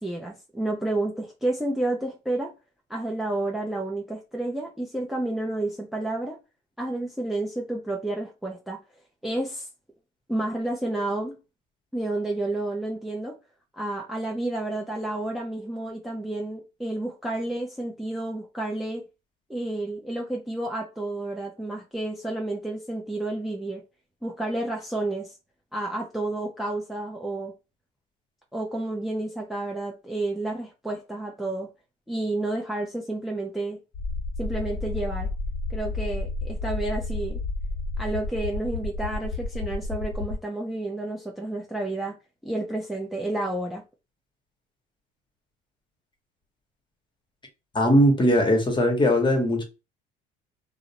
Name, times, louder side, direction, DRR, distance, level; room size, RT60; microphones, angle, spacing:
voice 1, 0.0-2.5 2.9-6.4 6.8-8.8 9.2-9.7 10.3-11.4 11.9-13.4 13.7-19.0 19.5-23.8 24.2-25.4 25.7-27.5 28.5-31.7 32.1-33.8 34.4-35.3 35.7-37.4 38.0-42.2 42.4-43.8, right 2 dB, ahead, 0.5 m, -30 dB
sound 1, 33.9-40.4, left 3 dB, 50° left, 0.8 m, -31 dB
voice 2, 47.7-49.6, equal, 25° left, 1.0 m, -20 dB
2.4 x 2.0 x 2.8 m
supercardioid pair, 85°, 20 cm